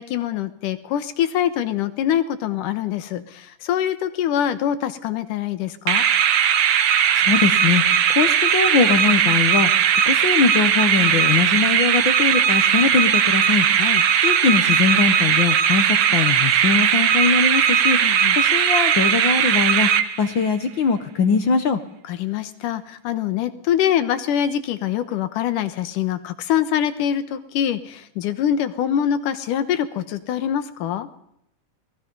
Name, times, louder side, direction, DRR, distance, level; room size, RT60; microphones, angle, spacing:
voice 1, 0.0-6.0 13.7-14.1 18.0-18.4 22.1-31.1, left 10 dB, 80° left, 12 dB, 2.7 m, -24 dB
sound 1, 5.9-20.5, right 9 dB, 60° right, 1.5 m, -18 dB
voice 2, 7.2-7.8 8.1-9.7 10.1-13.7 14.2-15.8 16.1-18.0 18.4-19.9 20.2-21.8, left 5 dB, 65° left, 9 dB, 1.2 m, -21 dB
27.0 x 19.5 x 5.4 m, 0.76 s
omnidirectional pair, 3.6 m